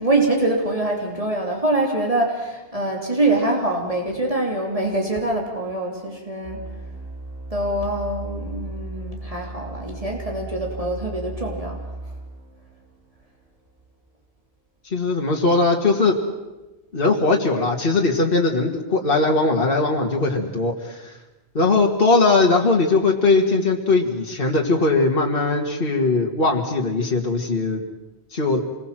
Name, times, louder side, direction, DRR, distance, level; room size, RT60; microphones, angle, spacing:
voice 1, 0.0-6.6 7.5-11.9, right 2 dB, 35° right, 0 dB, 3.4 m, -24 dB
sound 1, 6.4-14.0, right 2 dB, 60° right, 4.8 m, -36 dB
voice 2, 14.9-16.2 16.9-21.1 21.5-27.8 28.3-28.6, left 3 dB, 60° left, 0 dB, 2.3 m, -20 dB
27.0 x 21.0 x 7.6 m, 1.1 s
omnidirectional pair, 1.1 m